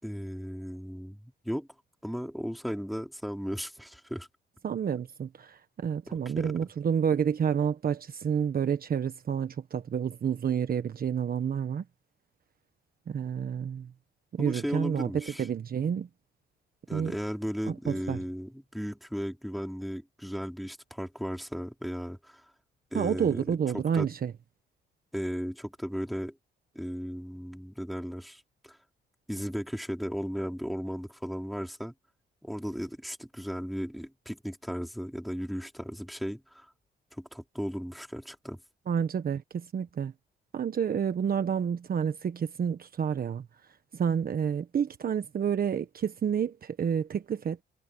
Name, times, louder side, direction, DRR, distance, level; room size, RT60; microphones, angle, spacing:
voice 1, 0.0-1.7 2.0-4.3 6.4-6.5 14.4-15.5 16.9-22.4 22.9-23.4 23.7-24.1 25.1-26.4 26.7-28.8 29.3-31.9 32.4-36.7 37.1-38.6, equal, ahead, 3.8 m, -36 dB
voice 2, 4.6-11.8 13.1-13.9 14.3-16.1 16.9-17.1 17.6-18.2 22.9-24.3 38.9-40.1 40.5-43.5 43.9-47.6, right 7 dB, 50° right, 1.3 m, -29 dB
cardioid pair, 90°, 20 cm